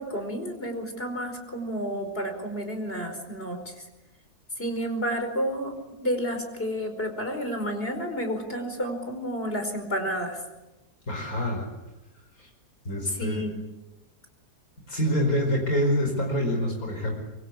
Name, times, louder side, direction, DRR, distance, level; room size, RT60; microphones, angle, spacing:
voice 1, 0.0-3.7 4.6-5.7 6.0-10.4 13.1-13.6, equal, 35° left, 6 dB, 5.2 m, -30 dB
voice 2, 11.1-11.7 12.4-12.5 12.9-13.5 14.9-17.1, equal, 60° left, 2 dB, 5.4 m, -26 dB
25.0 x 24.0 x 8.6 m, 1.0 s
omnidirectional pair, 1.7 m